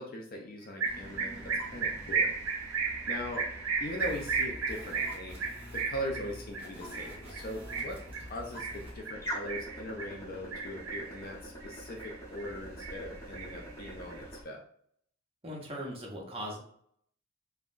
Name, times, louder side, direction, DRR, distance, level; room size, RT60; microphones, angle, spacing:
voice 1, 0.0-2.3 3.1-3.5 3.8-5.4 5.7-14.6, left 1 dB, 45° left, 1 dB, 0.4 m, -40 dB
sound 1, 0.8-14.4, equal, 15° left, 0.9 m, -46 dB
sound 2, 0.8-10.1 10.5-11.2 11.6-12.5 12.8-14.1, right 5 dB, 70° right, 0.6 m, -34 dB
sound 3, 3.9-9.0, left 1 dB, 10° right, 1.2 m, -48 dB
voice 2, 15.4-16.6, equal, 30° right, -1 dB, 0.7 m, -39 dB
3.6 x 2.1 x 2.5 m, 0.65 s
head